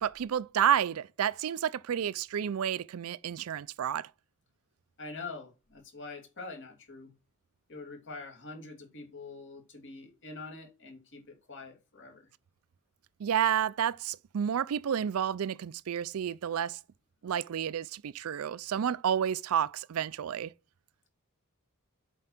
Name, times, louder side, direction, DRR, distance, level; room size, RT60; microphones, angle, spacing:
voice 1, 0.0-4.1 13.2-16.8 17.2-20.5, right 9 dB, 70° right, 0.4 m, -30 dB
voice 2, 5.0-7.1 7.7-12.3, left 3 dB, 60° left, 2.6 m, -45 dB
7.7 x 4.6 x 5.8 m
head